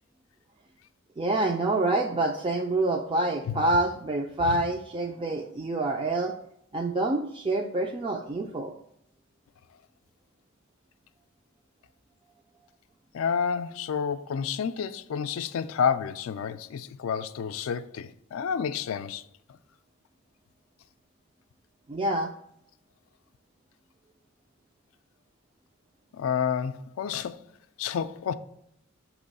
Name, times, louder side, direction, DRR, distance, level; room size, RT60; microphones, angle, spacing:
voice 1, 1.2-6.3 6.7-8.7 21.9-22.3, right 2 dB, 25° right, 0.4 m, -27 dB
voice 2, 13.1-19.2 19.5-19.6 26.1-27.4 27.8-28.3, left 7 dB, 85° left, 0.3 m, -30 dB
6.1 x 3.0 x 5.3 m
head